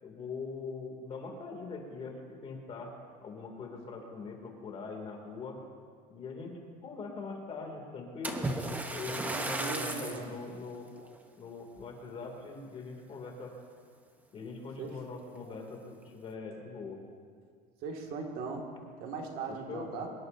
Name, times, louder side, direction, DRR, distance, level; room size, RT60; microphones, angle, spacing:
voice 1, 0.0-2.9 3.2-5.6 6.1-6.5 6.8-8.5 8.9-10.9 11.4-13.5 14.3-17.0 19.7-20.0, left 4 dB, 30° left, 1 dB, 2.6 m, -42 dB
Splash splatter, 8.2-10.3 10.9-11.2 11.8-11.9, right 2 dB, 10° right, 1.0 m, -35 dB
voice 2, 9.3-10.3 14.8-15.0 17.8-18.7 19.0-20.1, right 4 dB, 50° right, 1 dB, 2.1 m, -39 dB
24.0 x 21.5 x 2.7 m, 2.1 s
cardioid pair, 155°, 19 cm